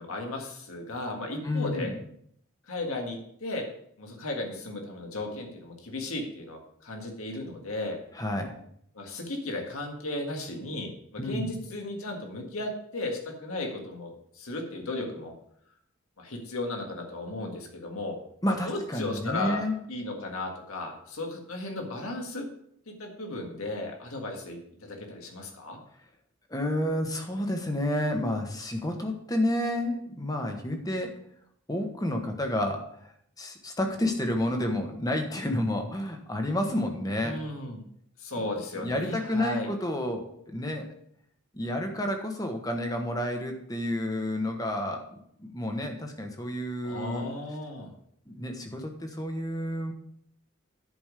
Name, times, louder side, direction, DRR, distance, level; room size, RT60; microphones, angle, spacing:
voice 1, 0.0-1.9 2.7-3.6 4.0-8.0 8.9-15.3 16.2-18.2 18.7-19.6 19.9-22.5 22.9-25.8 37.2-37.8 38.2-39.7 46.8-47.9, left 2 dB, 85° left, 2 dB, 1.7 m, -35 dB
voice 2, 1.4-1.9 8.1-8.5 11.2-11.5 18.4-19.7 26.5-31.1 31.7-32.8 33.4-37.4 38.4-38.5 38.7-40.9 41.5-45.1 45.4-47.3 48.3-49.9, left 1 dB, 15° left, 4 dB, 1.1 m, -30 dB
10.5 x 5.2 x 5.0 m, 0.69 s
head